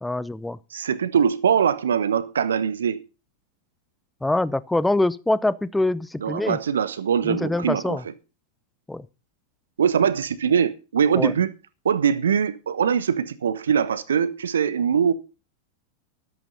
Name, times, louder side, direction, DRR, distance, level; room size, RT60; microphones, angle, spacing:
voice 1, 0.0-0.6 4.2-6.6 7.2-8.0 8.9-9.1 11.1-11.3, left 2 dB, 5° left, 0.6 m, -24 dB
voice 2, 0.7-3.0 6.2-8.0 9.8-11.5 11.8-15.1, right 7 dB, 65° right, 1.2 m, -22 dB
13.5 x 12.0 x 4.0 m
figure-of-eight pair, 90°, 0 cm